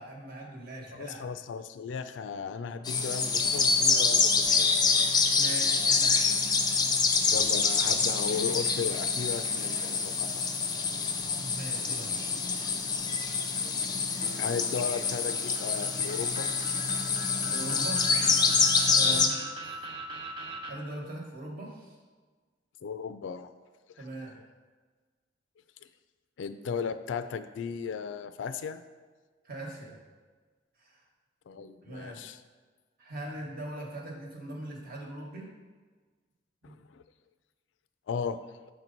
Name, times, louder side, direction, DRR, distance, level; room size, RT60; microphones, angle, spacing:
voice 1, 0.0-1.2 5.3-6.2 11.3-12.3 17.5-18.0 18.9-19.4 20.7-21.9 24.0-24.4 29.4-30.0 30.8-31.0 31.5-32.2 33.0-35.5 36.6-36.8, right 1 dB, 50° right, -1 dB, 1.3 m, -41 dB
voice 2, 0.9-4.7 7.3-10.4 13.1-13.2 13.6-14.1 14.3-16.5 19.0-19.2 22.8-23.5 24.0-24.1 26.4-28.8 31.5-32.4 36.6-37.0 38.1-38.4, left 6 dB, 75° left, 11 dB, 0.4 m, -36 dB
sound 1, 2.9-19.3, left 4 dB, 20° left, 0.5 m, -26 dB
sound 2, 14.2-20.7, right 3 dB, 30° right, 0.5 m, -42 dB
6.5 x 4.5 x 3.9 m, 1.4 s
head